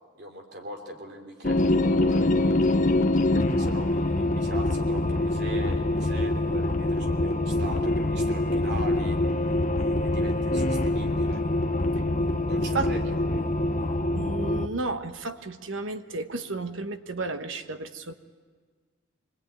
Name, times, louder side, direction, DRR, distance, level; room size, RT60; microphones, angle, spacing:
voice 1, 0.2-2.8 3.3-11.4 12.5-13.2, right 1 dB, 55° right, 3 dB, 3.4 m, -41 dB
sound 1, 1.4-14.7, left 2 dB, 40° left, 0.8 m, -25 dB
sound 2, 4.3-12.3, left 2 dB, 75° left, 0.8 m, -36 dB
voice 2, 14.1-18.1, right 3 dB, 80° right, 8 dB, 1.2 m, -32 dB
25.5 x 21.0 x 9.2 m, 1.6 s
head